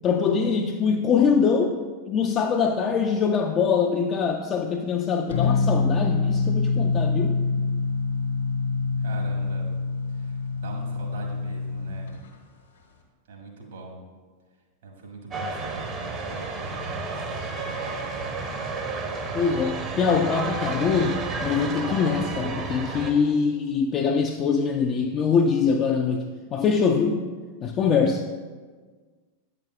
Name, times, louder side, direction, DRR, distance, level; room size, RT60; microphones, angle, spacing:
voice 1, 0.0-1.8 2.1-7.4 19.3-26.2 26.5-27.2 27.6-28.3, left 6 dB, 30° left, 3 dB, 0.4 m, -23 dB
sound 1, 5.3-12.2, left 4 dB, 65° left, 1.0 m, -25 dB
voice 2, 9.0-9.7 10.2-10.3 10.6-12.1 13.3-14.1 14.8-17.0 17.3-18.0, right 3 dB, 60° right, 0 dB, 1.4 m, -42 dB
sound 2, 15.3-23.1, right 3 dB, 30° right, 0.7 m, -31 dB
8.6 x 5.9 x 2.3 m, 1.4 s
figure-of-eight pair, 90°, 0 cm